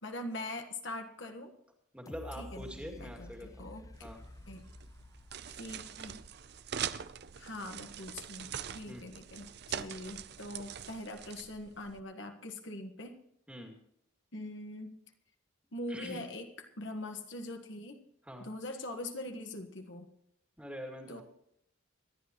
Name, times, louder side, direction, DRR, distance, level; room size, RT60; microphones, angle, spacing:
voice 1, 0.0-1.5 2.3-4.1 4.5-4.7 5.5-6.2 7.3-13.2 14.3-15.0 15.7-18.0 18.4-20.1 21.1-21.2, left 1 dB, 60° left, 5 dB, 1.5 m, -43 dB
voice 2, 1.9-3.7 4.0-4.2 8.9-9.0 13.5-13.8 15.9-16.2 18.3-18.5 20.6-21.2, equal, 5° right, 2 dB, 2.3 m, -44 dB
sound 1, 2.1-6.9 7.4-7.5, left 1 dB, 15° left, 0.5 m, -51 dB
sound 2, 3.9-12.0, right 8 dB, 50° right, 0.5 m, -43 dB
25.5 x 11.5 x 3.1 m, 0.76 s
head